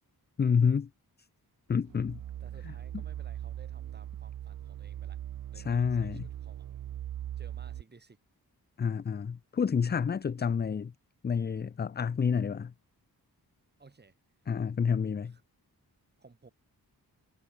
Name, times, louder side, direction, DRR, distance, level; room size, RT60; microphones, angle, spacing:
voice 1, 0.4-0.9 1.7-2.2 5.6-6.3 8.8-10.9 11.2-12.7 14.5-15.3, left 6 dB, 25° left, 0.4 m, -28 dB
sound 1, 1.9-7.8, right 11 dB, 60° right, 0.6 m, -40 dB
voice 2, 2.4-5.2 5.5-6.8 7.4-8.2 13.8-14.1 15.2-15.4 16.2-16.5, right 4 dB, 25° right, 2.6 m, -57 dB
wide cardioid pair, 175°, 38 cm